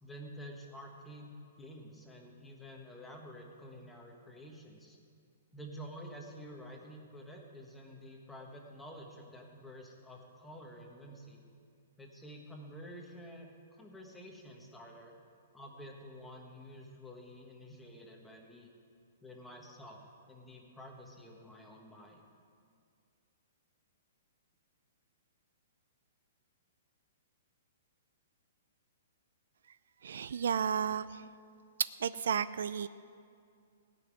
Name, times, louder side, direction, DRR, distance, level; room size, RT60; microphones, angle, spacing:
voice 1, 0.0-5.0 5.5-11.4 12.0-13.5 13.8-15.2 15.5-18.7 19.2-22.2, equal, 5° left, 0 dB, 1.3 m, -50 dB
voice 2, 30.0-31.2 32.0-32.9, right 7 dB, 75° right, 15 dB, 0.4 m, -33 dB
17.0 x 5.9 x 9.6 m, 2.3 s
hypercardioid pair, 165°, 0 cm